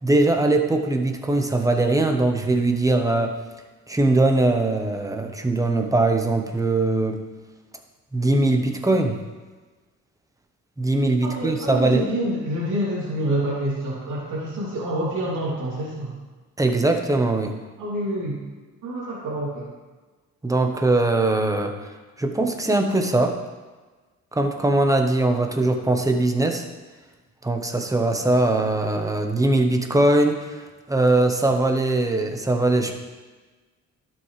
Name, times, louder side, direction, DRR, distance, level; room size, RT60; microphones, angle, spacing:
voice 1, 0.0-3.4 3.9-7.2 8.1-9.2 10.8-12.1 16.6-17.5 20.4-21.7 22.2-23.4 24.3-26.6 27.4-30.6 30.9-33.0, right 2 dB, 10° right, 4 dB, 1.1 m, -21 dB
voice 2, 11.2-16.1 17.8-18.4 18.8-19.7 28.5-28.6, right 1 dB, 85° right, -6 dB, 3.1 m, -27 dB
11.5 x 7.4 x 3.3 m, 1.3 s
cardioid pair, 90°, 30 cm